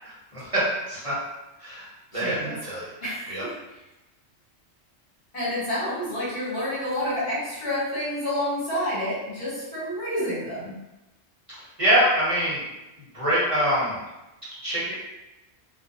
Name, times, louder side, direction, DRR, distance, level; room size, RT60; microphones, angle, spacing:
voice 1, 0.5-1.2 1.6-1.8 2.1-2.9 3.3-3.4 11.8-12.6 13.1-14.0 14.6-14.9, equal, 30° right, -10 dB, 0.9 m, -24 dB
voice 2, 2.1-2.5 3.0-3.5 5.3-10.7, left 1 dB, 75° left, -9 dB, 1.5 m, -29 dB
2.5 x 2.4 x 2.6 m, 1.0 s
omnidirectional pair, 1.1 m